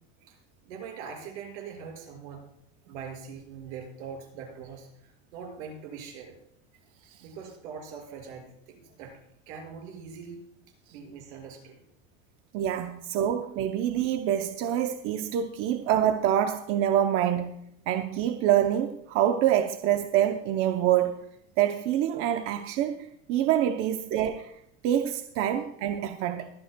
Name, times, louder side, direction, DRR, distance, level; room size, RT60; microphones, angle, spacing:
voice 1, 0.6-2.4 2.9-6.4 7.2-9.2 9.5-10.4 10.9-11.8, right 6 dB, 80° right, 5.7 m, -42 dB
voice 2, 12.5-17.6 17.9-21.2 21.6-24.5 24.8-26.5, right 11 dB, 40° right, 0.7 m, -26 dB
23.0 x 9.2 x 2.2 m
cardioid pair, 165°, 34 cm